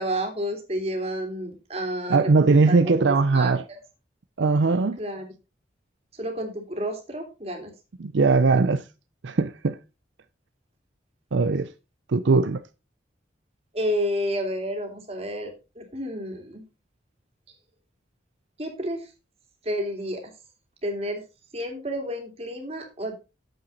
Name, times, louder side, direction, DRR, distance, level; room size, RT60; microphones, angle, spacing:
voice 1, 0.0-3.8 5.0-5.3 6.1-7.7 13.7-16.6 18.6-19.1 19.6-20.3 20.8-21.2 21.5-23.1, equal, 35° right, 2.6 m, -30 dB
voice 2, 2.1-3.6 4.4-5.0 8.0-8.8 9.2-9.8 11.3-11.7 12.1-12.6, right 3 dB, 80° right, 0.6 m, -20 dB
8.8 x 7.9 x 4.0 m
head